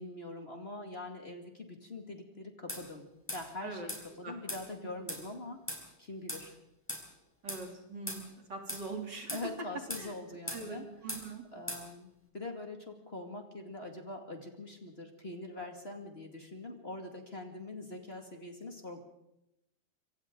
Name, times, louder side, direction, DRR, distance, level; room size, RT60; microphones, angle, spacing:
voice 1, 0.0-3.1 3.3-6.5 9.3-10.8 11.5-19.0, left 2 dB, 30° left, 3 dB, 2.4 m, -43 dB
sound 1, 2.7-2.8 3.3-3.4 3.9-4.0 4.5-4.6 5.1-5.2 5.7-5.8 6.3-6.4 6.9-7.0 7.5-7.6 8.1-8.2 8.7-8.8 9.3-9.4 9.9-10.1 10.5-10.6 11.1-11.2 11.7-11.8, equal, 5° left, 4.4 m, -39 dB
voice 2, 7.4-8.2 8.5-9.4 10.0-10.1 10.5-11.4, right 3 dB, 60° right, 2 dB, 3.7 m, -42 dB
26.0 x 26.0 x 3.9 m, 0.87 s
omnidirectional pair, 2.2 m